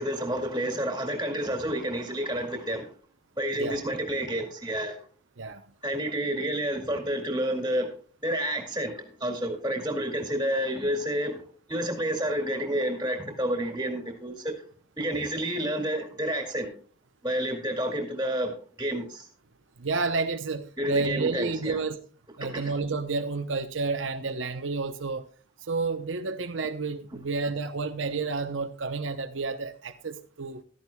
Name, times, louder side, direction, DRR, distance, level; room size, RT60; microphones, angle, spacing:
voice 1, 0.0-2.9 3.4-5.0 5.8-7.9 8.2-11.4 11.7-14.5 15.0-16.7 17.2-18.5 18.8-19.3 20.8-21.8 22.4-22.7, right 1 dB, 15° right, 2.2 m, -29 dB
voice 2, 19.8-22.0 22.4-25.3 25.6-30.6, right 4 dB, 90° right, 0.8 m, -30 dB
15.0 x 13.0 x 2.3 m
head